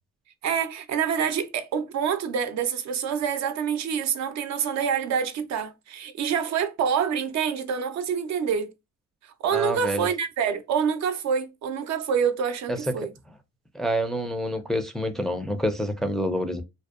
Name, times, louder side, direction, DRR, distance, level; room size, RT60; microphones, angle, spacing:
voice 1, 0.4-8.7 9.2-13.1, right 7 dB, 65° right, 0.5 m, -26 dB
voice 2, 9.5-10.1 12.7-13.1 13.7-16.6, equal, ahead, 0.4 m, -27 dB
2.6 x 2.0 x 2.3 m
cardioid pair, 90°, 30 cm